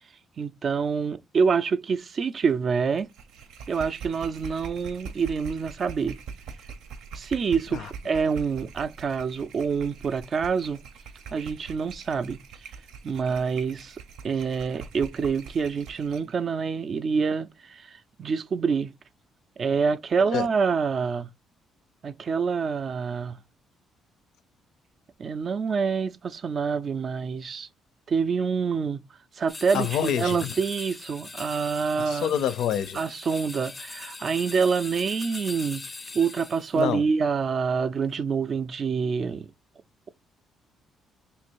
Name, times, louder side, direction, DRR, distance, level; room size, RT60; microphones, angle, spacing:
voice 1, 0.4-3.1 3.7-6.2 7.1-10.8 11.3-12.4 13.0-14.0 14.2-18.9 19.6-21.3 22.0-23.4 25.2-27.7 28.1-29.0 29.4-32.3 32.9-35.8 36.1-39.5, right 5 dB, 40° right, 0.3 m, -26 dB
sound 1, 2.9-16.3, right 6 dB, 90° right, 0.7 m, -43 dB
sound 2, 29.5-36.8, left 3 dB, 20° left, 0.4 m, -41 dB
voice 2, 29.7-30.5 32.0-33.0 36.8-37.0, left 9 dB, 75° left, 0.5 m, -27 dB
3.1 x 2.6 x 4.5 m
cardioid pair, 120°, 0 cm